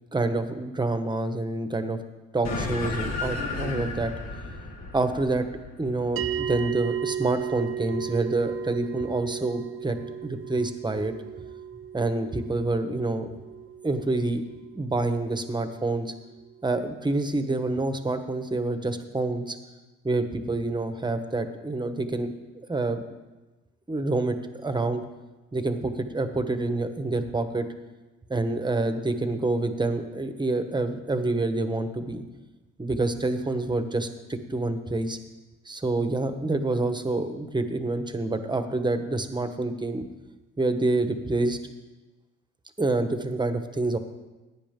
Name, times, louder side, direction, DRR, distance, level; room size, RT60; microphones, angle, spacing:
voice 1, 0.1-2.0 2.3-4.1 4.9-5.5 5.8-10.0 10.2-11.1 11.9-13.4 13.8-14.4 14.7-16.1 16.6-19.6 20.0-22.3 22.6-23.0 23.9-24.4 24.6-25.0 25.5-27.7 28.3-32.2 32.8-35.2 35.6-40.0 40.6-41.6 42.8-44.0, right 2 dB, 15° right, 8 dB, 1.2 m, -27 dB
sound 1, 2.4-7.2, left 3 dB, 60° left, 1.8 m, -33 dB
sound 2, 6.2-16.7, right 9 dB, 45° right, 0.7 m, -36 dB
16.5 x 9.8 x 3.8 m, 1.1 s
cardioid pair, 90°, 30 cm